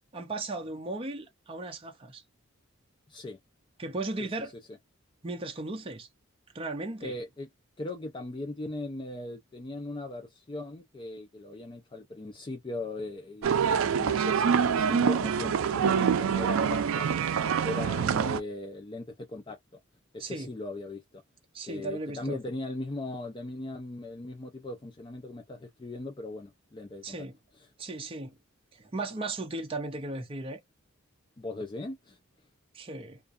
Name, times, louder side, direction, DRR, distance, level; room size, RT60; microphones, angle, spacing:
voice 1, 0.1-2.2 3.8-4.5 5.2-6.1 6.5-7.2 20.2-20.5 21.5-22.4 27.0-27.4 27.8-28.4 28.7-30.6 32.7-33.2, right 2 dB, 25° right, 0.6 m, -36 dB
voice 2, 3.1-3.4 7.0-7.5 7.8-19.6 20.1-21.2 21.7-27.3 31.4-32.2, left 2 dB, 25° left, 0.4 m, -39 dB
sound 1, 13.4-18.4, right 7 dB, 85° right, 0.4 m, -25 dB
2.5 x 2.2 x 2.4 m
head